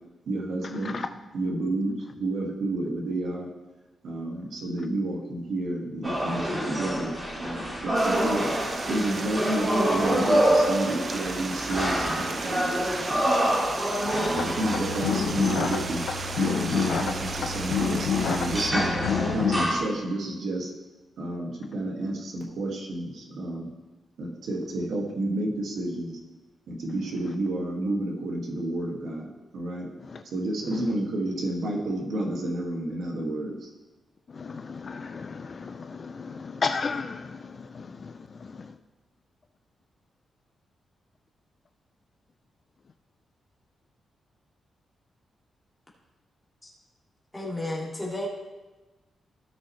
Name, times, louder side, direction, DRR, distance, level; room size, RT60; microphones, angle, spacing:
voice 1, 0.3-1.0 1.3-3.5 4.0-8.4 8.9-13.2 14.1-16.1 16.4-19.0 19.3-20.7 21.2-23.7 24.2-26.2 26.7-29.3 29.5-29.9 30.2-33.7, right 1 dB, 70° right, -1 dB, 2.0 m, -30 dB
sound 1, 6.0-19.8, right 1 dB, 20° right, 2.2 m, -27 dB
Stream, 7.9-18.7, right 4 dB, 35° right, 0.6 m, -36 dB
sound 2, 14.4-19.6, left 6 dB, 80° left, 0.8 m, -28 dB
voice 2, 34.3-38.7, left 5 dB, 35° left, 8 dB, 0.4 m, -34 dB
voice 3, 47.3-48.3, left 1 dB, 10° left, -5 dB, 2.4 m, -32 dB
16.5 x 6.3 x 3.2 m, 1.2 s
wide cardioid pair, 155°, 0 cm